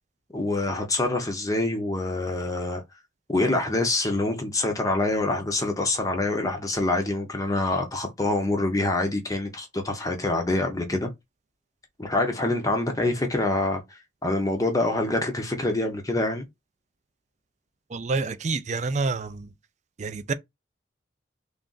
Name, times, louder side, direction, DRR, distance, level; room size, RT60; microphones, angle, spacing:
voice 1, 0.3-2.8 3.3-11.1 12.0-16.4, left 2 dB, 15° left, 0.6 m, -26 dB
voice 2, 17.9-19.5 20.0-20.3, right 3 dB, 35° right, 0.4 m, -28 dB
3.3 x 2.5 x 3.8 m
head